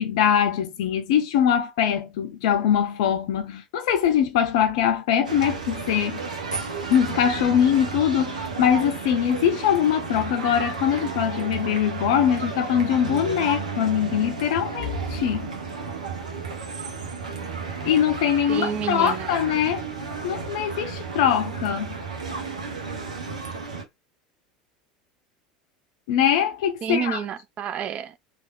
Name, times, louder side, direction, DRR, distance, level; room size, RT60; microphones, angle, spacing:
voice 1, 0.0-6.2 6.9-15.5 17.8-19.9 20.2-21.9 26.1-27.2, left 9 dB, 55° left, 0.5 m, -22 dB
sound 1, 5.2-23.8, right 5 dB, 75° right, 0.7 m, -33 dB
Wind instrument woodwind instrument, 10.5-15.2, left 3 dB, 50° right, 1.5 m, -44 dB
voice 2, 18.5-19.3 26.8-28.2, right 8 dB, 35° right, 0.4 m, -29 dB
3.4 x 2.3 x 2.2 m
figure-of-eight pair, 75°, 4 cm